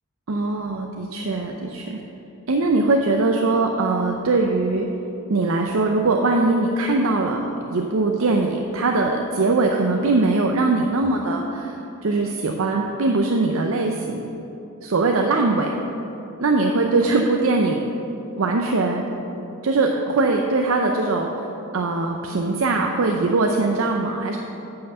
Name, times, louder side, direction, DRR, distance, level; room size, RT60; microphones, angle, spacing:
voice 1, 0.3-2.0 2.5-4.9 5.3-7.4 7.7-14.2 14.8-15.7 16.4-17.8 18.4-19.0 19.6-21.3 21.7-24.4, right 3 dB, 65° right, 2 dB, 0.6 m, -21 dB
9.7 x 5.7 x 6.7 m, 3.0 s
head